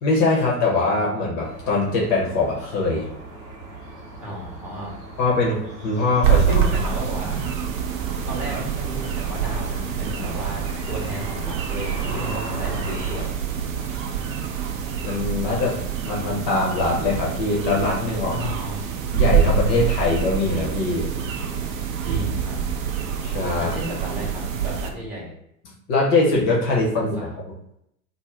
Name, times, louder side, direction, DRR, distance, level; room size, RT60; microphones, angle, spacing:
voice 1, 0.0-3.1 5.2-6.6 15.0-18.5 19.1-21.1 23.2-23.8 25.9-27.1, left 3 dB, 35° left, -3 dB, 0.7 m, -22 dB
sound 1, 1.4-13.3, right 2 dB, 80° right, 0.8 m, -38 dB
voice 2, 4.2-4.9 6.3-7.4 8.3-13.4 18.3-18.8 22.0-22.6 23.6-25.3 26.9-27.2, equal, 5° right, -6 dB, 0.7 m, -33 dB
sound 2, 6.2-24.9, right 8 dB, 55° right, 0.5 m, -26 dB
2.4 x 2.1 x 3.2 m, 0.77 s
figure-of-eight pair, 90°, 47 cm